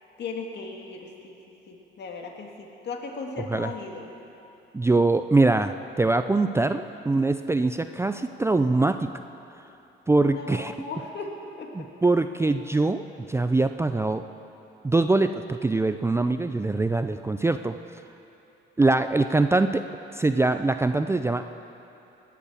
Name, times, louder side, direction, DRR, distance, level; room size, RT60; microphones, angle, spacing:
voice 1, 0.2-1.4 1.7-4.1 10.2-11.9, left 4 dB, 60° left, 2 dB, 1.9 m, -37 dB
voice 2, 4.7-9.1 10.1-10.7 11.7-14.2 14.8-17.8 18.8-19.8 20.1-21.6, right 2 dB, 15° right, 9 dB, 0.4 m, -23 dB
19.0 x 8.5 x 7.0 m, 2.9 s
cardioid pair, 90°, 20 cm